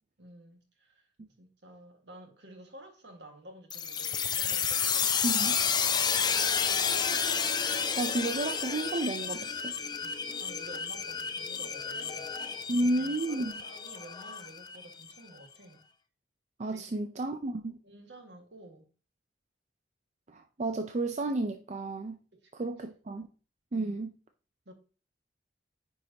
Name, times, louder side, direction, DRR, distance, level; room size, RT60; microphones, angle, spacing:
voice 1, 0.2-1.1 1.4-6.6 10.0-15.8 16.7-17.0 17.8-18.9 22.4-22.7 23.7-24.0 24.7-24.8, right 1 dB, 70° right, 1.8 m, -52 dB
sound 1, 3.7-15.1, left 7 dB, 25° left, 0.5 m, -31 dB
voice 2, 5.2-5.6 7.1-7.2 8.0-9.7 12.7-13.5 16.6-17.8 20.3-22.2 22.5-23.3 23.7-24.1, right 2 dB, 40° right, 0.5 m, -32 dB
9.3 x 4.7 x 2.9 m
head